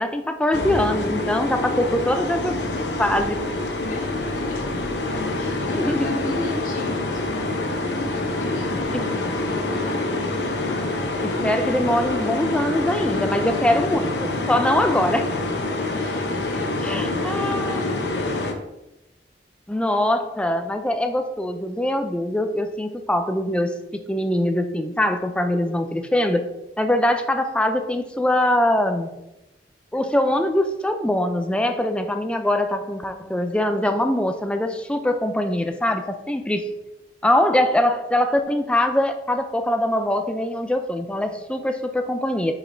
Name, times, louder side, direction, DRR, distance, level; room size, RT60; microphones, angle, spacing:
voice 1, 0.0-2.6 3.0-3.4 5.7-6.6 11.2-15.3 16.8-17.9 19.7-26.5 26.8-29.1 29.9-36.7 37.2-42.5, left 1 dB, 5° left, 6 dB, 0.4 m, -23 dB
sound 1, 0.5-18.5, left 2 dB, 80° left, 0.8 m, -26 dB
voice 2, 1.3-1.7 3.7-4.9 5.3-10.1 12.9-13.6 15.9-18.3, left 1 dB, 45° left, -3 dB, 1.1 m, -38 dB
7.4 x 4.9 x 2.7 m, 0.93 s
head